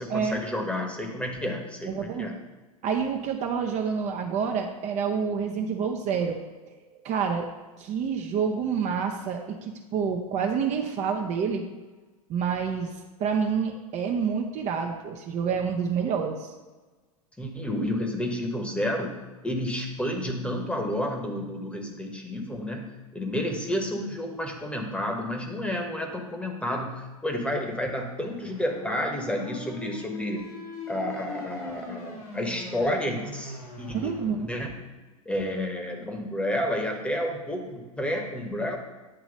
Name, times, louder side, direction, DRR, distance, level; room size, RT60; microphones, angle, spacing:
voice 1, 0.0-2.3 17.4-30.5 30.9-34.1 34.5-34.8 35.2-38.8, left 1 dB, 5° left, 2 dB, 1.1 m, -30 dB
voice 2, 1.9-2.3 2.8-6.4 6.9-7.5 7.8-11.6 12.3-12.9 13.2-16.5 33.9-34.5, right 6 dB, 40° right, 3 dB, 0.7 m, -28 dB
sound 1, 28.3-34.3, left 4 dB, 80° left, 2.0 m, -41 dB
8.9 x 3.0 x 5.1 m, 1.2 s
hypercardioid pair, 90°, 19 cm